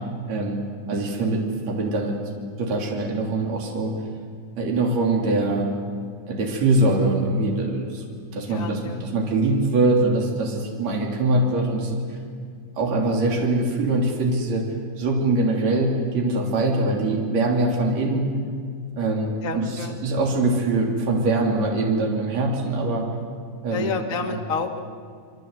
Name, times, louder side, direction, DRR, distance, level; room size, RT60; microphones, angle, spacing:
voice 1, 0.3-0.6 0.9-2.2 2.6-3.9 4.6-5.7 6.3-12.0 12.8-14.7 15.0-18.4 19.0-23.1 23.6-23.9 24.3-24.4, right 2 dB, 55° right, 0 dB, 4.3 m, -23 dB
voice 2, 8.5-9.0 19.4-20.0 23.7-24.8, left 4 dB, 35° left, 2 dB, 1.5 m, -29 dB
28.0 x 24.5 x 8.1 m, 2.2 s
omnidirectional pair, 3.9 m